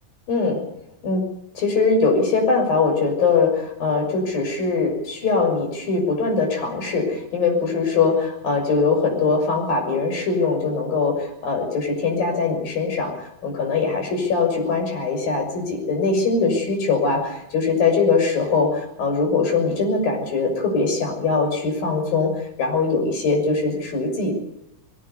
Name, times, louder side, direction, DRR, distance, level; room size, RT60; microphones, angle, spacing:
voice 1, 0.3-0.6 1.0-1.2 1.5-24.3, left 4 dB, 60° left, 3 dB, 8.1 m, -22 dB
22.5 x 18.5 x 8.3 m, 0.81 s
omnidirectional pair, 4.5 m